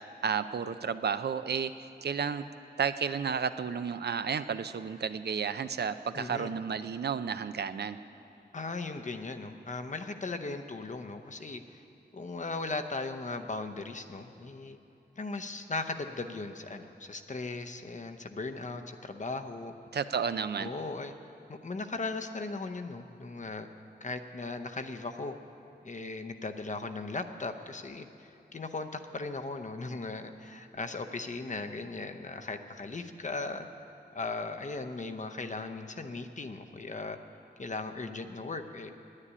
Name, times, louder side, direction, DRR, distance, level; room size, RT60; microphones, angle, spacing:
voice 1, 0.0-2.4 2.8-8.0 19.9-20.7, right 6 dB, 65° right, 12 dB, 0.4 m, -32 dB
voice 2, 6.2-6.5 8.5-11.8 12.1-14.8 15.2-19.7 20.6-21.1 21.5-23.7 24.0-25.4 25.8-33.7 34.1-37.2 37.6-38.9, left 3 dB, 45° left, 7 dB, 0.7 m, -38 dB
9.8 x 9.6 x 9.9 m, 2.8 s
wide cardioid pair, 90°, 18 cm